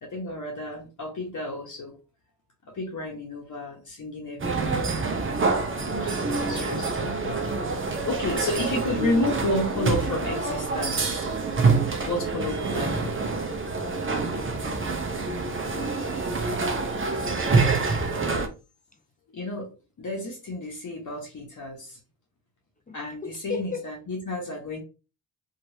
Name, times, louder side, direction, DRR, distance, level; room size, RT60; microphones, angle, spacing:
voice 1, 0.0-2.0 2.7-4.8 6.0-11.3 12.0-13.1 19.3-19.7 20.0-22.0 22.9-24.8, left 2 dB, 40° left, 1.1 m, -31 dB
sound 1, 4.4-18.5, right 4 dB, 25° right, 0.8 m, -26 dB
voice 2, 15.4-16.4 18.9-19.0 22.9-23.8, left 6 dB, 20° left, 0.6 m, -38 dB
3.0 x 2.8 x 2.8 m
supercardioid pair, 50°, 46 cm